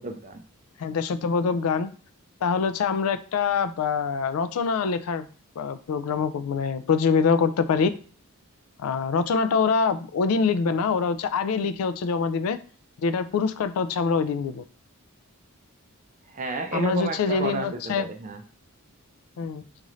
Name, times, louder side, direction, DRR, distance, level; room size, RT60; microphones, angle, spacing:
voice 1, 0.0-0.4 16.3-18.4, right 3 dB, 35° right, 6 dB, 0.4 m, -31 dB
voice 2, 0.8-1.9 2.4-5.3 5.6-7.9 8.8-12.6 13.0-14.6 16.7-18.1 19.4-19.6, left 5 dB, 80° left, 12 dB, 0.3 m, -24 dB
3.9 x 2.5 x 3.1 m, 0.41 s
head